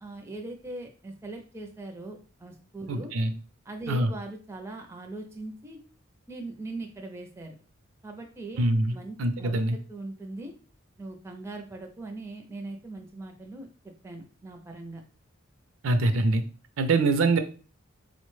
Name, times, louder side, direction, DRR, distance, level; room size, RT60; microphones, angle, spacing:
voice 1, 0.0-3.1 3.7-5.8 6.3-7.6 8.0-8.6 8.9-10.5 11.0-15.0, right 2 dB, 15° right, 3 dB, 0.4 m, -40 dB
voice 2, 2.9-3.3 3.9-4.1 8.6-9.8 15.8-16.4 16.8-17.4, right 2 dB, 80° right, 8 dB, 0.5 m, -24 dB
4.1 x 2.1 x 3.1 m, 0.37 s
head